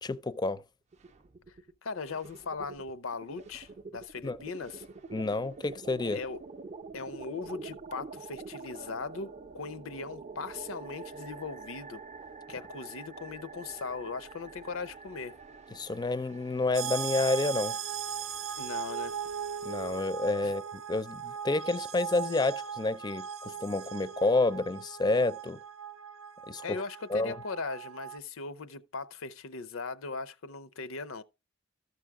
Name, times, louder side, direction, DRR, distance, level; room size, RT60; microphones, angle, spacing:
voice 1, 0.0-0.6 4.2-4.4 5.1-6.2 15.8-17.8 19.6-25.6 26.5-26.8 27.1-27.3, left 2 dB, 20° left, 0.4 m, -29 dB
sound 1, 0.9-1.7 2.0-20.0, right 4 dB, 35° right, 0.5 m, -47 dB
voice 2, 1.5-4.8 6.1-6.4 6.9-12.0 12.5-15.3 18.6-19.2 20.4-20.5 26.6-31.2, left 4 dB, 90° left, 0.7 m, -39 dB
sound 2, 16.7-28.2, right 8 dB, 80° right, 0.6 m, -38 dB
13.5 x 6.2 x 3.6 m
head